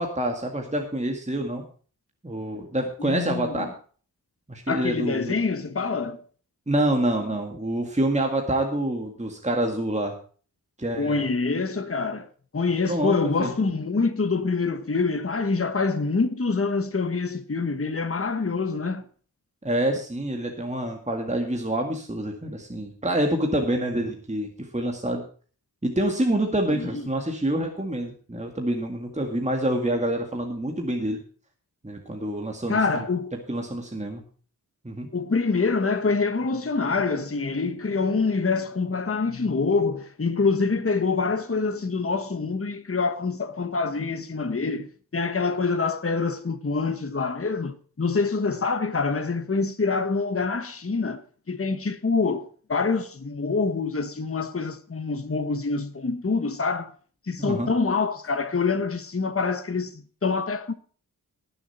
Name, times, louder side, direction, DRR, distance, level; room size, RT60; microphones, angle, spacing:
voice 1, 0.0-1.6 2.2-3.7 4.5-5.3 6.7-10.2 10.8-11.2 12.8-13.5 19.6-25.2 25.8-31.2 31.8-33.0 33.5-34.2 34.8-35.1 57.4-57.7, right 1 dB, 20° right, 2.0 m, -27 dB
voice 2, 3.0-3.6 4.7-6.2 11.0-19.0 26.7-27.0 32.7-33.3 35.1-44.9 45.1-51.2 51.5-56.9 57.3-60.7, left 4 dB, 35° left, 1.2 m, -26 dB
19.0 x 7.1 x 4.3 m
wide cardioid pair, 75°, 38 cm